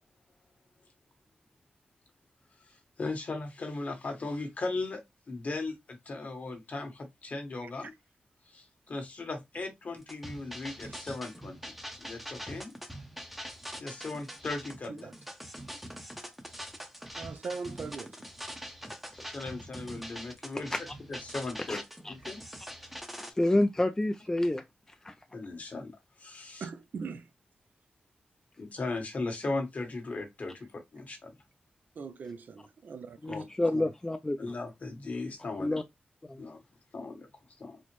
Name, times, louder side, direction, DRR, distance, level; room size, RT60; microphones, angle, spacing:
voice 1, 2.7-5.0 5.3-7.9 8.5-11.6 12.0-12.7 13.8-15.1 19.3-20.7 21.1-21.8 22.1-22.4 25.3-26.7 28.6-31.3 33.3-33.5 34.4-35.8 36.4-36.6 36.9-37.3 37.6-37.8, left 3 dB, 55° left, 1.3 m, -37 dB
sound 1, 10.0-23.3, equal, 5° right, 0.7 m, -43 dB
voice 2, 17.2-18.3 26.6-27.2 32.0-33.2 33.7-33.9, right 5 dB, 70° right, 0.4 m, -40 dB
voice 3, 23.4-24.6 25.0-25.1 33.2-34.5 35.6-35.8 36.3-36.4, left 1 dB, 15° left, 0.3 m, -28 dB
4.2 x 2.0 x 3.0 m
cardioid pair, 80°, 3 cm